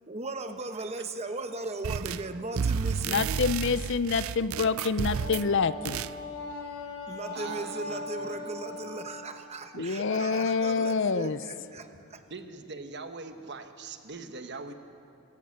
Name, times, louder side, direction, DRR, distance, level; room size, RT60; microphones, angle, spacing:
voice 1, 0.0-3.3 7.1-12.2, right 3 dB, 30° right, 8 dB, 1.0 m, -37 dB
sound 1, 1.8-2.3 2.5-5.5 5.8-6.1, right 6 dB, 65° right, 0.4 m, -31 dB
voice 2, 3.1-6.0 9.8-11.4, left 5 dB, 55° left, 15 dB, 0.5 m, -27 dB
Wind instrument woodwind instrument, 5.1-9.3, left 3 dB, 75° left, 3.4 m, -40 dB
voice 3, 7.3-8.4 9.7-9.9 12.3-14.7, right 4 dB, 50° right, 8 dB, 1.2 m, -42 dB
24.0 x 17.0 x 6.6 m, 2.5 s
head